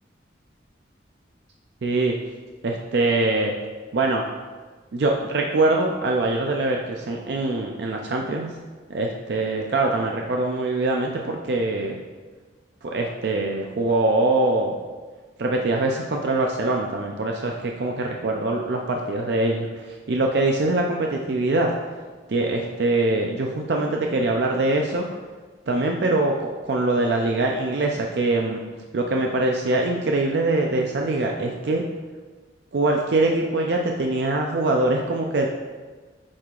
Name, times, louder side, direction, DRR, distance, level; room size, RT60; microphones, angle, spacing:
voice 1, 1.8-2.1 2.6-3.5 3.9-4.2 4.9-8.5 8.9-12.0 12.8-14.8 15.4-19.7 20.1-21.7 22.3-25.1 25.7-26.3 26.7-28.6 28.9-31.8 32.7-35.5, right 2 dB, 70° right, 1 dB, 0.5 m, -23 dB
8.4 x 4.6 x 2.4 m, 1.4 s
head